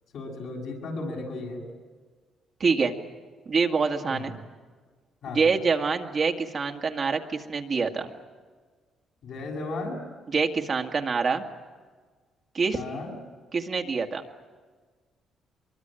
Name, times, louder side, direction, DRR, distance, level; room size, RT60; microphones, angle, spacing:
voice 1, 0.1-1.6 4.1-4.3 5.2-5.4 9.2-10.0 12.7-13.1, left 2 dB, 75° left, 0 dB, 7.5 m, -35 dB
voice 2, 2.6-3.0 3.5-4.3 5.3-8.1 10.3-11.4 12.5-12.8 13.5-14.2, right 4 dB, 45° right, 3 dB, 1.9 m, -25 dB
23.5 x 23.0 x 9.1 m, 1.5 s
cardioid pair, 90°, 0 cm